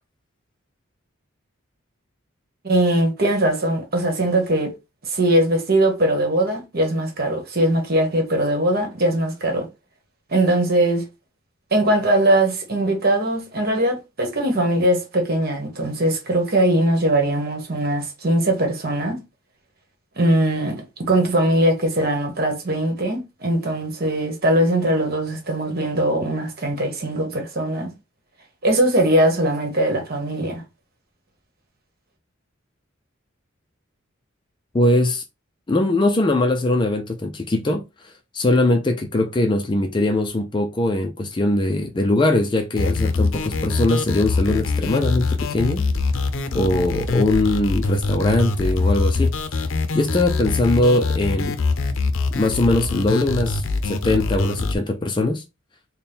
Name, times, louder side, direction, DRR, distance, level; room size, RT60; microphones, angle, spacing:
voice 1, 2.6-4.7 5.1-9.7 10.3-11.0 11.7-19.2 20.2-27.9 28.6-30.6, right 1 dB, 45° right, 1.2 m, -20 dB
voice 2, 34.7-35.2 35.7-45.8 46.5-49.3 49.9-51.5 52.3-55.4, left 2 dB, 20° left, 0.4 m, -21 dB
sound 1, 42.8-54.7, left 3 dB, 70° left, 0.5 m, -23 dB
4.2 x 2.2 x 3.5 m
head